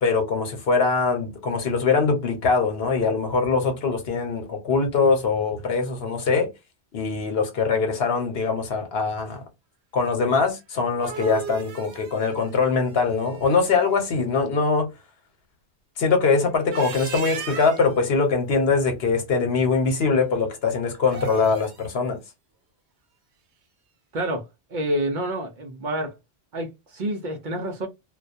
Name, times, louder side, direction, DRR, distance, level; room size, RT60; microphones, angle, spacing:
voice 1, 0.0-6.5 6.9-9.4 9.9-14.9 16.0-22.2, left 4 dB, 70° left, 1.0 m, -22 dB
sound 1, 10.7-13.8 16.5-18.0 21.0-21.9, right 6 dB, 90° right, 0.9 m, -37 dB
voice 2, 24.1-24.5 24.7-26.2 26.5-27.9, right 1 dB, 55° right, 0.7 m, -28 dB
2.3 x 2.2 x 2.5 m
omnidirectional pair, 1.1 m